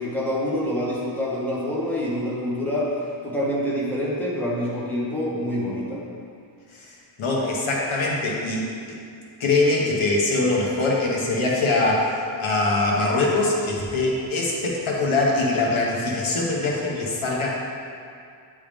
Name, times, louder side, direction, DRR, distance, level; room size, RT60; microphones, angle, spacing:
voice 1, 0.0-2.9 3.2-6.0, left 1 dB, 5° left, -7 dB, 1.2 m, -26 dB
voice 2, 7.2-9.0 9.4-17.5, left 2 dB, 75° left, -3 dB, 1.2 m, -23 dB
9.8 x 3.5 x 3.5 m, 2.4 s
wide cardioid pair, 145°, 49 cm